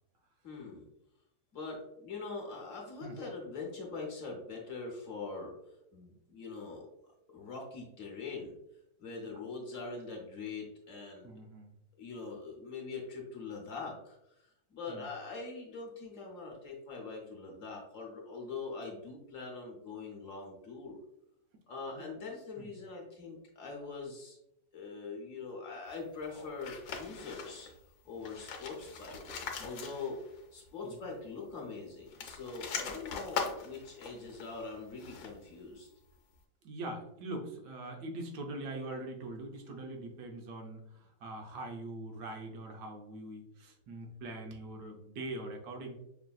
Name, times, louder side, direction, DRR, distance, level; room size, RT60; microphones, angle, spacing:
voice 1, 0.4-0.9 1.5-5.5 5.9-6.9 7.3-8.6 9.0-11.3 12.0-14.3 14.7-21.0 21.7-24.4 24.7-27.7 28.0-29.2 29.6-30.2 30.5-35.9, left 4 dB, 60° left, -1 dB, 1.0 m, -43 dB
voice 2, 11.2-11.7 14.9-15.1 21.9-22.0 22.6-22.7 30.8-31.0 36.6-45.9, right 2 dB, 85° right, 2 dB, 1.3 m, -43 dB
Human voice, 26.2-27.2 28.8-29.4, left 1 dB, 25° left, 0.9 m, -55 dB
sound 1, 26.6-27.8 28.1-30.4 30.7-30.8 32.0-35.5, left 5 dB, 85° left, 1.3 m, -41 dB
5.8 x 2.6 x 2.3 m, 0.84 s
omnidirectional pair, 1.8 m